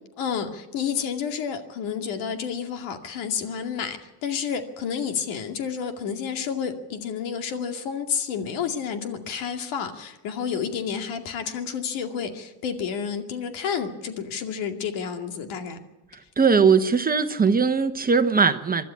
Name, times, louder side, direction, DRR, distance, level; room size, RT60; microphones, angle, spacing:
voice 1, 0.2-15.8, left 7 dB, 90° left, 5 dB, 2.5 m, -30 dB
voice 2, 16.1-18.8, right 5 dB, 20° right, 9 dB, 0.9 m, -20 dB
24.5 x 12.5 x 8.7 m, 1.0 s
cardioid pair, 135°, 45 cm